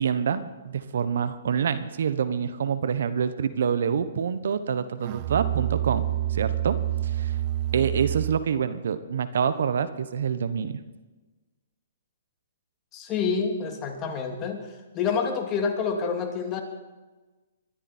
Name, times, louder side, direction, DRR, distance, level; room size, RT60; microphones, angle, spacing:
voice 1, 0.0-6.0 6.3-6.8 7.0-7.4 7.7-10.8, right 7 dB, 70° right, 12 dB, 1.2 m, -26 dB
Musical instrument, 5.0-8.5, right 13 dB, 40° right, 0.7 m, -28 dB
voice 2, 12.9-16.6, left 5 dB, 25° left, 3 dB, 2.8 m, -28 dB
22.0 x 13.0 x 4.5 m, 1.2 s
hypercardioid pair, 135°, 0 cm